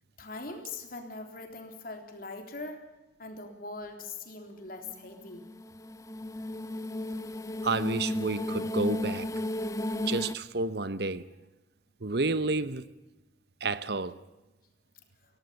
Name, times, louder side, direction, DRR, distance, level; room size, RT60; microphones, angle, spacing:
voice 1, 0.2-2.8 3.2-5.4, left 3 dB, 50° left, 3.7 m, -41 dB
sound 1, 4.9-10.4, left 1 dB, 20° left, 0.7 m, -34 dB
voice 2, 7.6-9.3 10.1-11.3 12.0-12.9 13.6-14.2, right 3 dB, 60° right, 0.9 m, -30 dB
24.0 x 17.5 x 7.0 m
head